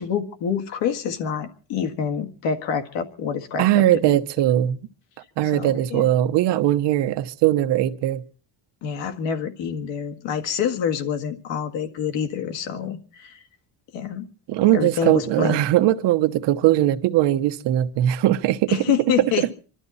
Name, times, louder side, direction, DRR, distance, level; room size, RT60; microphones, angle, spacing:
voice 1, 0.0-4.2 5.4-6.1 8.8-13.4 13.9-14.3 14.7-15.6 18.7-19.5, left 7 dB, 85° left, 1.9 m, -27 dB
voice 2, 3.6-4.8 5.4-8.2 14.5-18.8 19.2-19.3, right 13 dB, 70° right, 1.1 m, -20 dB
26.0 x 12.5 x 4.1 m
cardioid pair, 155°, 43 cm